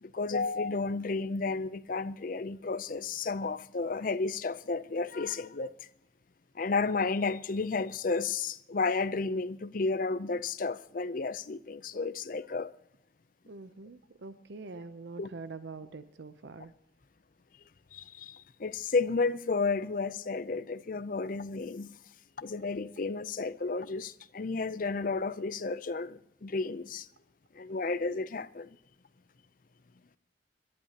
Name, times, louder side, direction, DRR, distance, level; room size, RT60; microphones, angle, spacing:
voice 1, 0.0-5.9 6.5-12.7 15.2-15.3 17.9-21.9 22.4-27.1 27.5-28.7, left 4 dB, 45° left, 0.5 m, -32 dB
voice 2, 13.5-16.7, right 3 dB, 70° right, 0.6 m, -44 dB
26.5 x 12.0 x 2.9 m
head